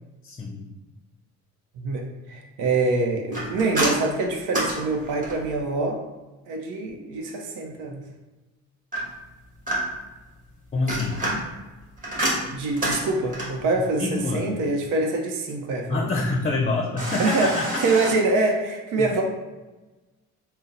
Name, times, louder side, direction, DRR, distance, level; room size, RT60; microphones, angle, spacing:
voice 1, 0.2-0.6 10.7-11.2 14.0-14.5 15.9-18.0 19.0-19.1, left 3 dB, 25° left, 0 dB, 0.5 m, -26 dB
voice 2, 1.8-6.0 6.5-8.1 12.5-16.1 17.2-19.2, right 3 dB, 85° right, 2 dB, 0.6 m, -25 dB
sound 1, 3.3-5.6 8.9-10.2 10.7-13.7 17.0-18.1, right 1 dB, 25° right, 1.4 m, -29 dB
3.8 x 2.0 x 4.0 m, 1.1 s
cardioid pair, 90°, 30 cm